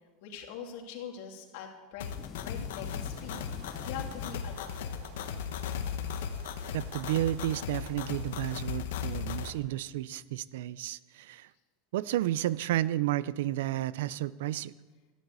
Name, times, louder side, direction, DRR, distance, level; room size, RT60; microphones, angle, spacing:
voice 1, 0.2-2.1 2.4-5.1, left 7 dB, 60° left, 2 dB, 2.8 m, -43 dB
sound 1, 2.0-9.5, left 7 dB, 85° left, 1.2 m, -37 dB
sound 2, 2.0-5.2, left 8 dB, 25° left, 0.6 m, -47 dB
sound 3, 2.9-8.4, right 7 dB, 65° right, 1.3 m, -52 dB
voice 2, 6.7-11.5 11.9-14.7, right 14 dB, 80° right, 19 dB, 0.5 m, -32 dB
13.0 x 10.5 x 8.3 m, 1.3 s
supercardioid pair, 150°, 0 cm